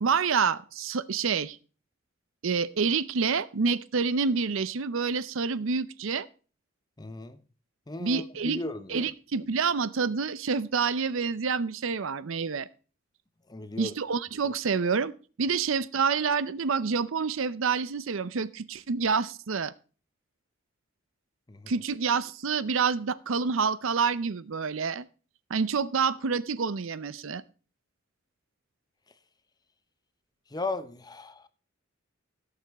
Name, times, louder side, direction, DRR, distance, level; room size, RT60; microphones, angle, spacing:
voice 1, 0.0-1.6 2.4-6.3 8.0-8.6 8.9-12.7 13.8-15.1 15.4-19.7 21.7-25.1 25.5-27.4, right 5 dB, 70° right, 0.6 m, -28 dB
voice 2, 7.0-7.4 7.9-9.1 13.5-13.9 21.5-21.7 30.5-31.5, left 2 dB, 20° left, 0.7 m, -36 dB
16.5 x 6.8 x 4.1 m
head